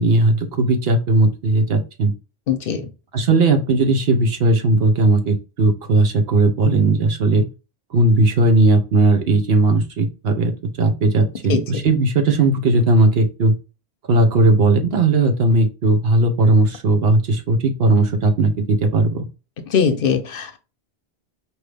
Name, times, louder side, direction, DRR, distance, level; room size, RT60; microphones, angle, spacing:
voice 1, 0.0-2.1 3.1-7.4 7.9-13.5 14.1-19.2, right 2 dB, 70° right, 1.0 m, -17 dB
voice 2, 2.5-2.9 11.5-11.6 19.7-20.6, left 6 dB, 60° left, 0.8 m, -20 dB
4.6 x 2.7 x 3.3 m
omnidirectional pair, 1.1 m